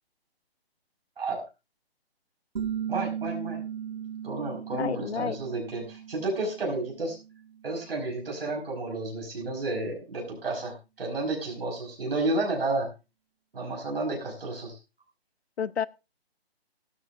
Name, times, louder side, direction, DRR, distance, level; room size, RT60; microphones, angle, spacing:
sound 1, 2.6-8.0, right 9 dB, 50° right, 0.7 m, -37 dB
voice 1, 2.9-3.6 4.2-7.1 7.6-12.9 13.5-14.8, right 2 dB, 65° right, 4.8 m, -31 dB
voice 2, 4.7-5.4 15.6-15.9, left 8 dB, 85° left, 0.7 m, -30 dB
15.5 x 13.0 x 2.5 m
hypercardioid pair, 175°, 31 cm